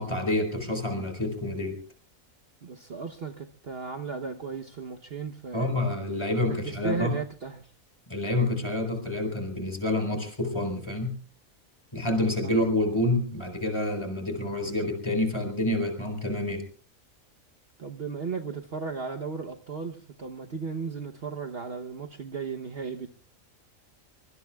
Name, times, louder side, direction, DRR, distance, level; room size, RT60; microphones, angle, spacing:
voice 1, 0.0-1.8 5.5-7.1 8.1-11.2 11.9-16.6, left 1 dB, 20° left, 5 dB, 4.4 m, -28 dB
voice 2, 2.6-5.9 6.7-7.7 12.4-12.5 17.8-23.1, right 5 dB, 50° right, 4 dB, 1.1 m, -35 dB
24.5 x 24.0 x 2.3 m, 0.39 s
omnidirectional pair, 1.4 m